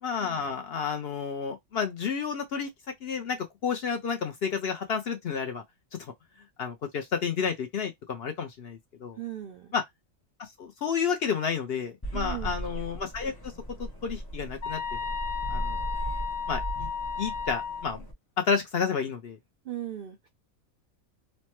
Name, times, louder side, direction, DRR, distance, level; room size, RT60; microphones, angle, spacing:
voice 1, 0.0-2.7 3.0-5.6 6.0-6.1 6.6-9.2 9.7-9.8 10.4-13.3 13.8-15.1 15.5-15.9 16.5-16.9 17.2-18.1 18.4-19.4, left 6 dB, 60° left, 0.7 m, -31 dB
voice 2, 9.2-9.7 12.1-12.5 19.7-20.3, right 12 dB, 70° right, 0.5 m, -37 dB
sound 1, 12.0-18.1, right 1 dB, 20° left, 0.8 m, -37 dB
sound 2, 14.6-17.9, left 6 dB, 80° left, 1.1 m, -34 dB
3.2 x 2.1 x 2.9 m
omnidirectional pair, 1.4 m